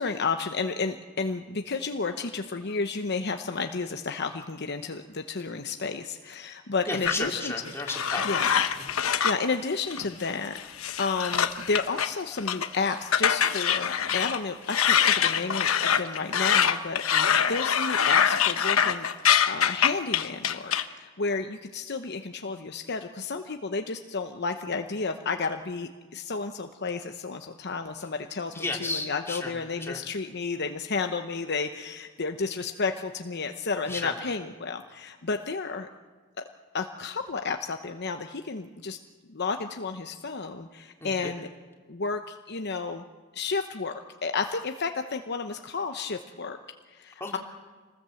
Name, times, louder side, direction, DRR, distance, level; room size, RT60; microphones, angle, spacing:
voice 1, 0.0-7.5 8.2-8.5 9.2-35.9 36.7-39.0 39.3-41.5 41.9-43.0 43.3-43.9 44.2-46.6 46.9-47.4, left 4 dB, 55° left, 6 dB, 0.9 m, -32 dB
voice 2, 6.8-9.0 17.1-17.3 28.5-30.0 33.9-34.2 41.0-41.3 47.2-47.4, left 2 dB, 10° left, 0 dB, 3.3 m, -34 dB
sound 1, 7.1-9.4 9.9-10.3 10.6-12.1 12.4-12.8 13.1-14.4 14.7-20.8, left 8 dB, 85° left, 1.1 m, -24 dB
26.5 x 19.5 x 7.7 m, 1.4 s
head